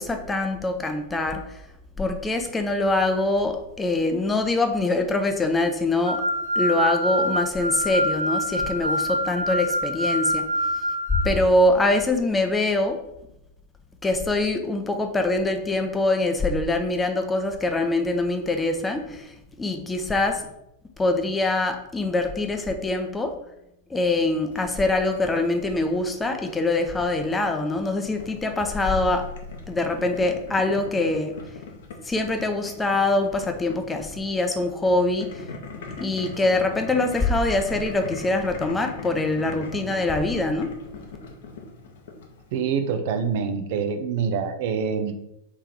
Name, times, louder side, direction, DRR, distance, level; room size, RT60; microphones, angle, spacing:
voice 1, 0.0-1.6 2.0-6.2 6.6-10.4 11.2-13.0 14.0-20.5 21.0-23.3 23.9-29.2 29.7-31.3 32.0-35.4 36.0-40.7, left 2 dB, 10° left, 5 dB, 0.6 m, -24 dB
sound 1, 6.1-11.2, equal, 85° right, 0.9 m, -25 dB
Boiling, 24.5-42.6, left 4 dB, 55° left, 0.7 m, -40 dB
voice 2, 42.5-45.1, right 6 dB, 50° right, 7 dB, 0.5 m, -25 dB
3.4 x 3.3 x 4.4 m, 0.85 s
figure-of-eight pair, 90°, 0 cm